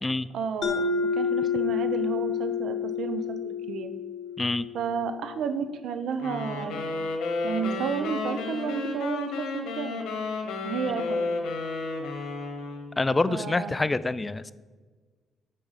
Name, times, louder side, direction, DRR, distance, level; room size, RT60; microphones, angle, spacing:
voice 1, 0.3-3.9 4.7-6.8 7.4-10.0 10.6-11.3 13.3-13.9, right 6 dB, 75° right, 9 dB, 0.7 m, -32 dB
Mallet percussion, 0.6-5.2, left 6 dB, 55° left, 1.0 m, -29 dB
sound 1, 6.2-13.0, left 3 dB, 80° left, 1.2 m, -32 dB
voice 2, 13.0-14.5, left 3 dB, 20° left, 16 dB, 0.3 m, -26 dB
8.4 x 4.6 x 5.6 m, 1.4 s
cardioid pair, 90°, 0 cm